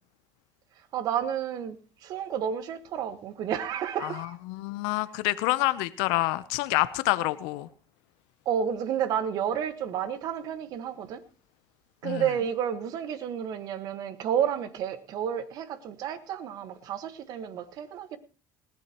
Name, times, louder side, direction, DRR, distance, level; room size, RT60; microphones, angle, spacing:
voice 1, 0.9-1.8 2.0-4.3 8.4-11.2 12.0-18.2, right 9 dB, 60° right, 11 dB, 1.4 m, -31 dB
voice 2, 4.0-7.7 12.0-12.2, left 19 dB, 75° left, 15 dB, 0.7 m, -27 dB
19.5 x 16.0 x 3.0 m, 0.36 s
hypercardioid pair, 75°, 7 cm